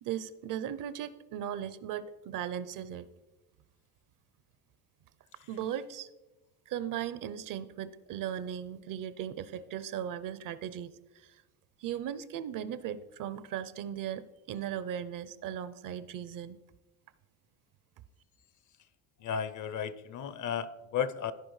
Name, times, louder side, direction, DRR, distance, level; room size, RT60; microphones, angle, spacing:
voice 1, 0.0-3.1 5.5-6.1 6.7-11.4 11.8-16.6, right 10 dB, 55° right, 15 dB, 0.6 m, -37 dB
voice 2, 19.2-21.3, left 7 dB, 50° left, 15 dB, 0.6 m, -34 dB
14.5 x 4.9 x 3.1 m, 1.1 s
cardioid pair, 95°, 40 cm